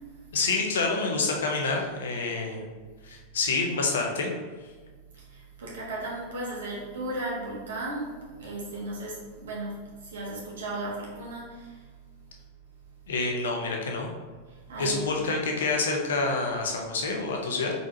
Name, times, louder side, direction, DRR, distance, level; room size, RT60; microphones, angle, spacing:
voice 1, 0.3-2.6 3.0-4.3 13.1-14.1 14.8-17.7, left 3 dB, 65° left, 1 dB, 0.8 m, -27 dB
voice 2, 5.3-9.8 10.0-11.7 14.7-15.0, right 2 dB, 65° right, -4 dB, 1.5 m, -35 dB
4.7 x 4.0 x 2.7 m, 1.4 s
figure-of-eight pair, 90°, 0 cm